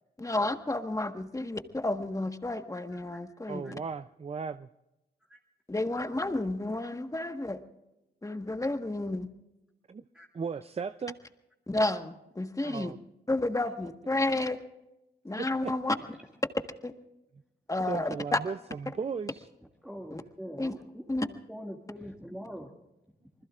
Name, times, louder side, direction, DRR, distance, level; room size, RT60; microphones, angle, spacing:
voice 1, 0.2-3.6 5.7-7.6 8.2-9.3 11.7-12.9 13.3-14.6 15.2-15.9 16.8-16.9 17.7-18.4 20.1-20.2 20.6-20.7 21.1-21.2, left 2 dB, 15° left, 7 dB, 1.5 m, -31 dB
voice 2, 3.5-4.7 9.9-10.0 10.3-11.2 12.6-13.0 15.6-15.7 17.9-19.5, right 5 dB, 35° right, 12 dB, 0.5 m, -36 dB
voice 3, 19.8-21.1 21.5-22.7, equal, 5° right, -2 dB, 2.2 m, -43 dB
27.5 x 20.5 x 2.5 m, 0.95 s
cardioid pair, 60°, 18 cm